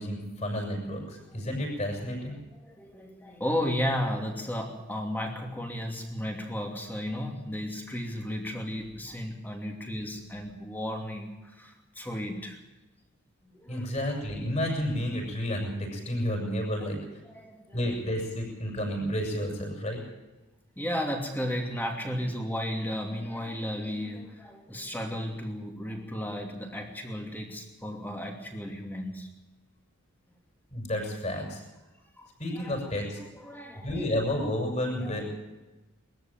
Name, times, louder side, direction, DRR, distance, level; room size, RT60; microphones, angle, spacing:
voice 1, 0.0-2.4 13.7-17.0 17.7-20.0 30.7-31.6 32.4-33.2 33.8-35.3, left 1 dB, 30° left, 1 dB, 7.1 m, -31 dB
voice 2, 2.3-12.6 13.4-13.9 17.2-18.1 20.8-29.3 32.2-32.3 32.6-32.8 33.2-34.2 35.0-35.3, equal, 10° left, 2 dB, 2.7 m, -34 dB
22.0 x 14.0 x 9.1 m, 1.1 s
head